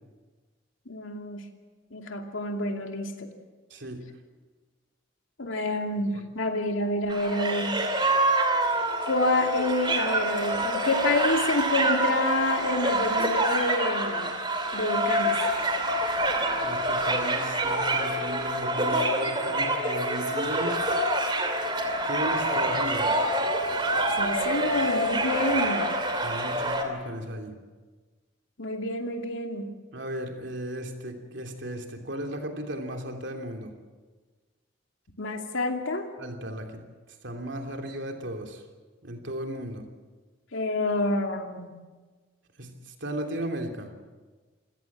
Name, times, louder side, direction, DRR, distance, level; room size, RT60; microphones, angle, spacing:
voice 1, 0.9-1.4 1.9-3.3 5.4-7.8 9.1-14.4 14.7-15.4 24.2-26.0 28.6-29.7 35.2-36.1 40.5-41.8, left 2 dB, 75° left, 4 dB, 2.6 m, -28 dB
voice 2, 3.7-4.0 16.6-20.8 22.0-23.3 26.2-27.6 29.9-33.7 36.2-36.8 37.2-38.6 39.0-39.9 42.6-43.9, right 1 dB, 60° right, 3 dB, 3.1 m, -35 dB
sound 1, 7.1-26.8, right 1 dB, 25° right, 2.8 m, -26 dB
27.5 x 17.0 x 7.5 m, 1.3 s
head